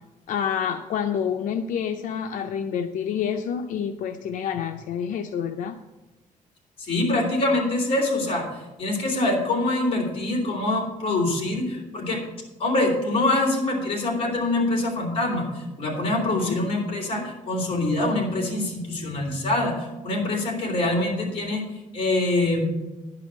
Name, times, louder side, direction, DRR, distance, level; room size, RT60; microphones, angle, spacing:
voice 1, 0.3-5.8 16.2-16.6, left 8 dB, 80° left, 6 dB, 0.5 m, -28 dB
voice 2, 6.8-12.2 12.6-21.6 21.9-22.6, left 2 dB, 45° left, 0 dB, 3.0 m, -24 dB
11.5 x 4.9 x 8.0 m, 1.1 s
cardioid pair, 165°, 13 cm